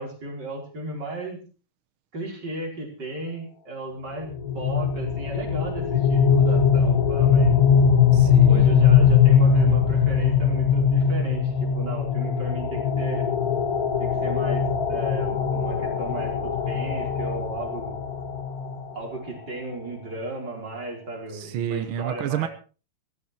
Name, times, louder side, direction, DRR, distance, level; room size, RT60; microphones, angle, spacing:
voice 1, 0.0-1.4 2.1-4.3 4.5-7.5 8.5-13.3 14.0-18.0 18.9-22.5, right 2 dB, 30° right, 1 dB, 5.1 m, -35 dB
sound 1, 4.3-19.2, left 7 dB, 45° left, 1.2 m, -21 dB
voice 2, 8.1-8.7 21.3-22.5, right 10 dB, 70° right, 11 dB, 1.2 m, -29 dB
17.5 x 14.0 x 4.4 m, 0.36 s
omnidirectional pair, 3.8 m